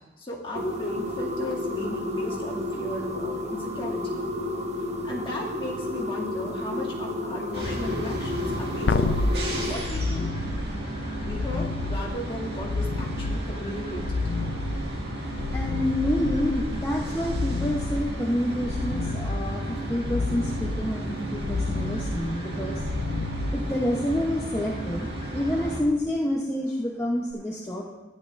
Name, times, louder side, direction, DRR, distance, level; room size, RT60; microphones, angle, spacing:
voice 1, 0.2-4.3 5.0-9.2 9.6-10.3 11.2-14.2, left 1 dB, 30° left, -6 dB, 2.2 m, -35 dB
sound 1, 0.6-9.7, left 2 dB, 35° right, 1.0 m, -31 dB
sound 2, 7.5-25.8, right 1 dB, 60° right, 1.9 m, -33 dB
sound 3, 8.9-24.2 27.3-27.4, left 3 dB, 70° left, 0.4 m, -30 dB
voice 2, 15.5-22.8 23.5-27.9, left 1 dB, 15° left, -3 dB, 0.8 m, -28 dB
14.0 x 10.5 x 2.5 m, 1.1 s
head